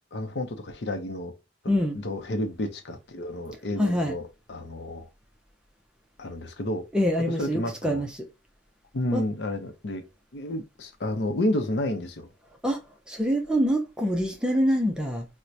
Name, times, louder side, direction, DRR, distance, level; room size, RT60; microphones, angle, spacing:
voice 1, 0.1-1.3 1.9-5.1 6.2-6.8 7.3-8.0 8.9-10.0 10.3-12.3, left 1 dB, 65° left, 0.6 m, -31 dB
voice 2, 1.7-2.0 3.8-4.1 6.9-8.1 9.1-9.2 12.6-12.8 13.1-15.3, equal, 5° right, 0.4 m, -25 dB
4.4 x 2.1 x 2.5 m
head